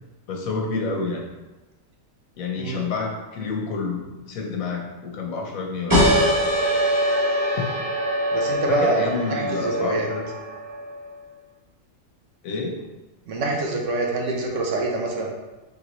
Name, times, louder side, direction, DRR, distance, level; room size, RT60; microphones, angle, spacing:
voice 1, 0.3-1.3 2.4-6.3 8.7-10.3 12.4-12.8, left 4 dB, 90° left, 1 dB, 1.2 m, -29 dB
sound 1, 5.9-11.1, equal, 20° right, 0.8 m, -23 dB
voice 2, 8.3-10.1 13.3-15.3, right 3 dB, 70° right, 0 dB, 1.1 m, -25 dB
4.0 x 3.4 x 3.0 m, 1.1 s
omnidirectional pair, 1.4 m